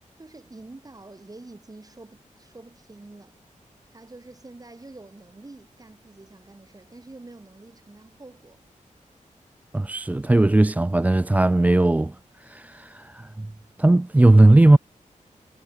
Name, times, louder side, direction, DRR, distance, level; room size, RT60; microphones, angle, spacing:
voice 1, 0.2-3.4 3.9-8.7, right 2 dB, 25° right, 7.7 m, -46 dB
voice 2, 9.7-12.2 12.4-13.5 13.8-14.8, right 2 dB, 10° right, 0.3 m, -18 dB
wide cardioid pair, 105°, 14 cm